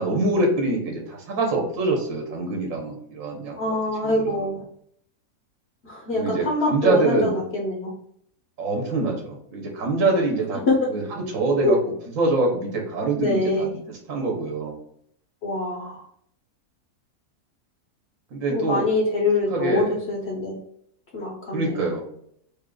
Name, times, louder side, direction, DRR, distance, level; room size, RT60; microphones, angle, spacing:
voice 1, 0.0-3.8 4.0-4.5 6.1-7.3 8.6-10.6 10.9-11.0 11.3-11.8 12.2-14.8 18.3-18.9 19.5-19.9 21.5-22.0, right 3 dB, 65° right, 1 dB, 1.3 m, -24 dB
voice 2, 3.6-4.6 5.8-7.9 10.7-10.9 11.6-11.8 13.2-13.7 15.4-16.0 18.5-20.6 21.1-21.8, left 2 dB, 55° left, -2 dB, 0.9 m, -24 dB
3.6 x 2.4 x 3.7 m, 0.68 s
omnidirectional pair, 1.5 m